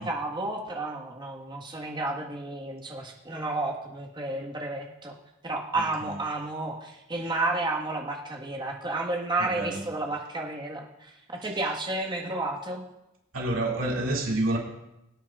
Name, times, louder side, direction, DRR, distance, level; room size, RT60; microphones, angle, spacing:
voice 1, 0.0-5.1 5.4-12.8, right 2 dB, 25° right, -1 dB, 1.5 m, -31 dB
voice 2, 9.4-9.8 13.3-14.6, right 1 dB, 80° right, -2 dB, 2.6 m, -28 dB
22.5 x 8.9 x 2.5 m, 0.89 s
head